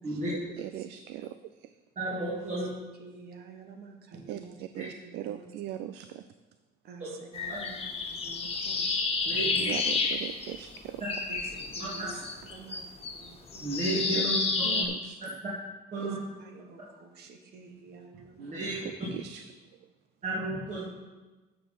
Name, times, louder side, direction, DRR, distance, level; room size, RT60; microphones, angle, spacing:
voice 1, 0.3-1.7 4.3-6.3 8.3-8.4 9.6-11.0 14.1-14.3 14.6-15.2 16.0-16.1 18.8-19.5 19.8-19.9, right 12 dB, 90° right, 11 dB, 0.4 m, -40 dB
voice 2, 2.0-2.7 4.8-4.9 7.0-7.1 7.5-7.6 9.2-9.7 11.8-12.2 13.6-14.4 14.8-14.9 15.9-16.2 18.4-19.1 20.2-20.8, right 2 dB, 45° right, -7 dB, 2.6 m, -33 dB
voice 3, 3.0-4.6 5.0-5.5 6.8-9.9 11.3-13.8 15.9-18.5, right 4 dB, 70° right, 4 dB, 1.4 m, -50 dB
sound 1, 7.3-10.8 11.0-14.9, left 4 dB, 35° left, 1.5 m, -30 dB
9.1 x 7.0 x 5.8 m, 1.2 s
cardioid pair, 110°, 17 cm